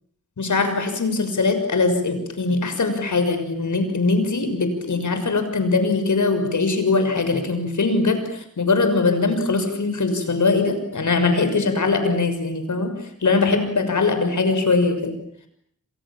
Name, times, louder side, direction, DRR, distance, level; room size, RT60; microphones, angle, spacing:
voice 1, 0.4-12.9 13.2-15.1, left 3 dB, 75° left, 7 dB, 6.4 m, -21 dB
30.0 x 26.5 x 7.5 m, 0.67 s
wide cardioid pair, 80°, 30 cm